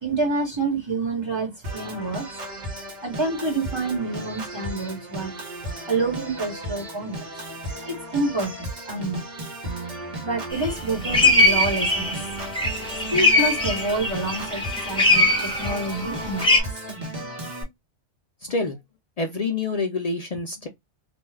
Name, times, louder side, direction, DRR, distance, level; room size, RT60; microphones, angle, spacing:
voice 1, 0.0-2.3 3.0-5.3 5.9-7.4 7.9-9.2 10.2-12.4 13.1-16.8, right 2 dB, 25° right, 1.1 m, -28 dB
Organ, 1.6-17.6, right 1 dB, 45° right, 1.0 m, -35 dB
sound 1, 10.5-10.7 11.0-16.6, left 2 dB, 5° left, 0.8 m, -21 dB
voice 2, 18.4-18.8 19.2-20.7, left 3 dB, 55° left, 0.4 m, -27 dB
2.5 x 2.2 x 3.2 m
omnidirectional pair, 1.2 m